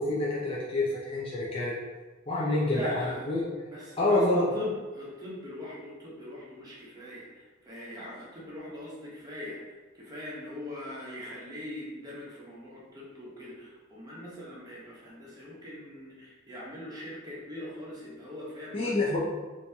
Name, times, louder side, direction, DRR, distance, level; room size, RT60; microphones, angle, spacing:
voice 1, 0.0-1.7 2.3-3.4 4.0-4.5 18.7-19.2, left 2 dB, 25° left, -6 dB, 0.5 m, -27 dB
voice 2, 2.7-3.2 3.7-9.6 9.9-19.2, left 1 dB, 20° right, -6 dB, 0.9 m, -41 dB
3.0 x 2.7 x 3.4 m, 1.3 s
head